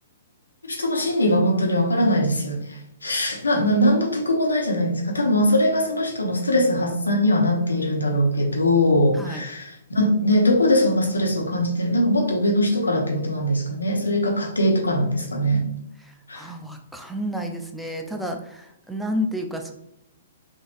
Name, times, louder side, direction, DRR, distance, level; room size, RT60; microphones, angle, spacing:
voice 1, 0.6-15.7 16.3-16.4, left 1 dB, 90° left, 1 dB, 0.8 m, -21 dB
voice 2, 9.1-9.4 16.0-19.7, equal, ahead, 3 dB, 0.4 m, -31 dB
3.7 x 2.5 x 2.5 m, 0.80 s
hypercardioid pair, 125°, 0 cm